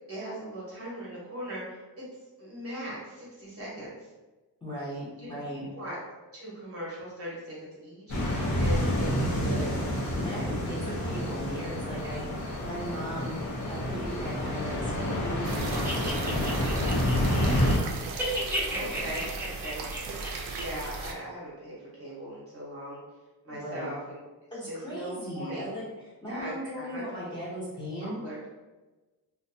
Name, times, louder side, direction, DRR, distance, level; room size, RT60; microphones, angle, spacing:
voice 1, 0.1-2.1 2.4-4.1 5.2-5.3 5.7-6.0 6.3-9.7 18.7-19.8 20.6-23.0 23.4-24.2 24.6-25.7 26.2-27.0 28.0-28.4, equal, 40° right, -6 dB, 0.9 m, -39 dB
voice 2, 4.6-5.7 10.2-12.4 12.6-13.4 13.7-17.7 23.5-23.9 24.5-25.9 26.2-28.2, equal, 10° left, -9 dB, 0.9 m, -37 dB
sound 1, 8.1-17.8, equal, 50° left, 0.7 m, -29 dB
sound 2, 15.4-21.1, right 4 dB, 65° right, 0.5 m, -37 dB
sound 3, 15.7-17.8 18.1-20.6, equal, 5° right, 0.5 m, -34 dB
2.6 x 2.2 x 2.6 m, 1.2 s
wide cardioid pair, 135°, 38 cm